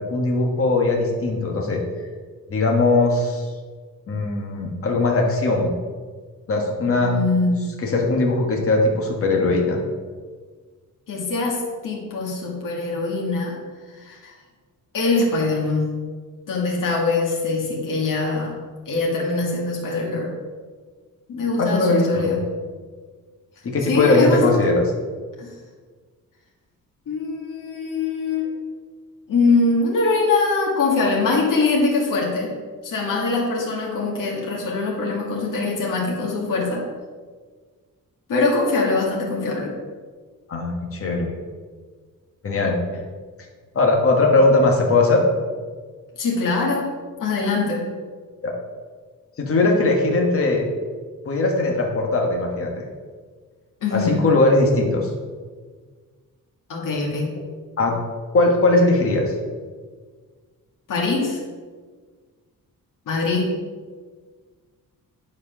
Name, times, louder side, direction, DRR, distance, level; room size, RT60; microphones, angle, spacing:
voice 1, 0.0-1.8 2.5-3.5 4.1-5.7 6.5-7.1 7.8-9.8 21.6-22.4 23.6-24.8 40.5-41.3 42.4-42.8 43.7-45.2 48.4-48.5 49.4-50.6 51.2-52.8 53.9-55.1 57.8-57.9 58.3-59.3, left 2 dB, 40° left, 0 dB, 1.4 m, -19 dB
voice 2, 6.9-7.7 11.1-13.6 13.9-14.3 14.9-16.0 16.5-18.6 18.9-20.3 21.3-22.4 23.9-24.7 25.4-25.5 27.1-28.5 29.3-32.6 32.8-36.9 38.3-39.7 46.2-46.9 47.2-47.9 53.8-54.2 56.7-57.3 60.9-61.4 63.1-63.5, left 3 dB, 70° left, -3 dB, 2.1 m, -23 dB
9.9 x 4.8 x 6.0 m, 1.5 s
wide cardioid pair, 160°, 33 cm